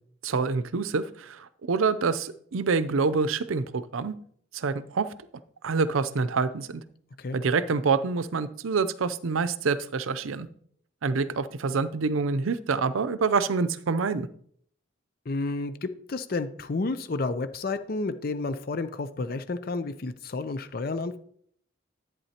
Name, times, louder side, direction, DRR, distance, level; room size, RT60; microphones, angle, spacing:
voice 1, 0.2-4.1 4.5-5.1 5.6-6.8 7.3-10.5 11.0-14.3, right 4 dB, 85° right, 15 dB, 0.6 m, -26 dB
voice 2, 15.3-21.2, left 3 dB, 45° left, 11 dB, 0.5 m, -31 dB
11.0 x 8.9 x 2.9 m, 0.63 s
head